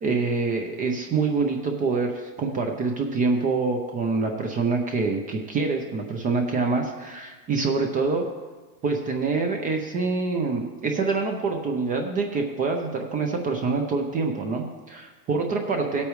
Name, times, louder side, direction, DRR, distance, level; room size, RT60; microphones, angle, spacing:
voice 1, 0.0-8.3 8.8-16.0, right 4 dB, 20° right, 3 dB, 0.6 m, -26 dB
16.5 x 8.4 x 3.1 m, 1.3 s
supercardioid pair, 145°, 45 cm